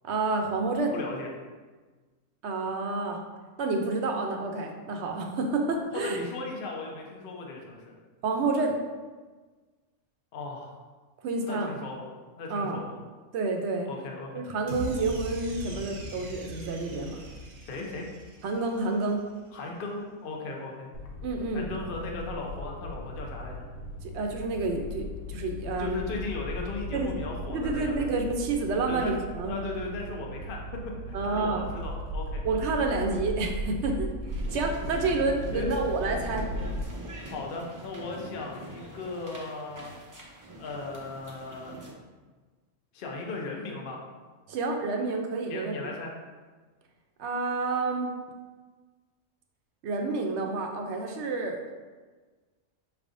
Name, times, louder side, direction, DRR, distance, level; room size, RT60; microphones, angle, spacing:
voice 1, 0.0-0.9 2.4-3.2 3.6-6.2 8.2-8.8 11.2-11.7 12.5-12.8 13.3-13.9 14.3-17.2 18.4-19.3 21.2-21.7 24.1-26.0 26.9-27.1 27.5-29.5 31.1-31.7 32.4-34.1 34.5-36.5 44.5-45.7 47.2-48.1 49.8-51.6, right 3 dB, 65° right, 2 dB, 0.8 m, -29 dB
voice 2, 0.9-1.3 5.9-7.9 10.3-10.7 11.4-12.1 12.4-12.9 13.8-14.4 17.6-18.1 19.5-20.9 21.5-23.7 25.8-28.1 28.9-29.1 29.5-30.8 31.1-32.4 35.5-35.7 37.3-39.9 40.6-41.8 42.9-44.0 45.5-46.1, left 3 dB, 50° left, 0 dB, 0.8 m, -37 dB
sound 1, 14.7-19.0, equal, 90° right, 1.1 m, -40 dB
sound 2, 20.9-36.8, equal, 80° left, 1.0 m, -37 dB
sound 3, 34.3-41.9, right 1 dB, 30° right, 0.4 m, -44 dB
5.7 x 3.4 x 2.5 m, 1.4 s
omnidirectional pair, 1.3 m